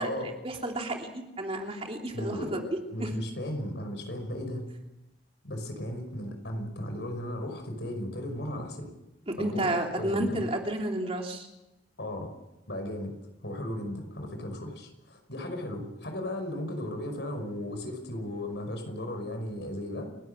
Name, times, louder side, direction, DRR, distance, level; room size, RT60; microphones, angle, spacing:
voice 1, 0.0-2.6 3.0-3.1 9.4-11.5, right 1 dB, 35° right, 2 dB, 3.1 m, -31 dB
voice 2, 2.1-2.6 2.9-4.7 5.4-8.9 9.4-10.4 12.0-12.3 12.7-13.1 13.4-20.1, left 1 dB, 75° left, 5 dB, 5.5 m, -35 dB
30.0 x 12.5 x 8.0 m, 0.96 s
head